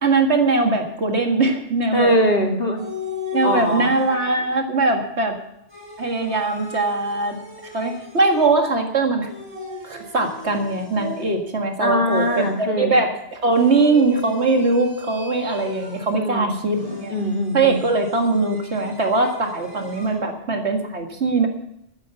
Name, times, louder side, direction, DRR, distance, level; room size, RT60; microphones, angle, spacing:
voice 1, 0.0-2.1 3.3-5.4 6.0-7.4 7.7-9.3 9.8-17.1 17.5-21.5, right 3 dB, 70° right, 3 dB, 2.2 m, -21 dB
voice 2, 1.9-2.8 3.4-3.9 11.8-13.0 16.1-16.6 17.1-17.8, left 1 dB, 55° left, 1 dB, 2.5 m, -21 dB
sound 1, 2.8-4.5 5.7-8.8 9.2-11.6 12.1-12.8 13.5-16.3 16.7-20.2, left 4 dB, 20° left, 5.2 m, -36 dB
12.5 x 9.7 x 7.0 m, 0.80 s
omnidirectional pair, 1.2 m